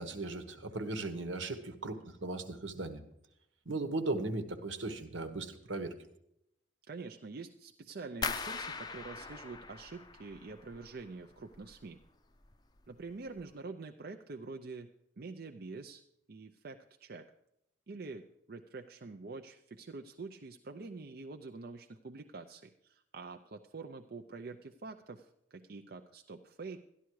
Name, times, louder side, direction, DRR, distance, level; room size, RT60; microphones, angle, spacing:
voice 1, 0.0-3.0 3.6-5.9, right 2 dB, 75° right, 8 dB, 1.3 m, -37 dB
voice 2, 6.9-12.0 12.9-14.9 15.2-16.0 16.3-17.3 17.9-26.8, right 3 dB, 50° right, 5 dB, 0.5 m, -46 dB
sound 1, 8.2-11.1 11.4-12.1 12.4-12.9 13.3-13.4, left 4 dB, 20° left, 0.5 m, -41 dB
13.0 x 11.5 x 4.7 m, 0.79 s
head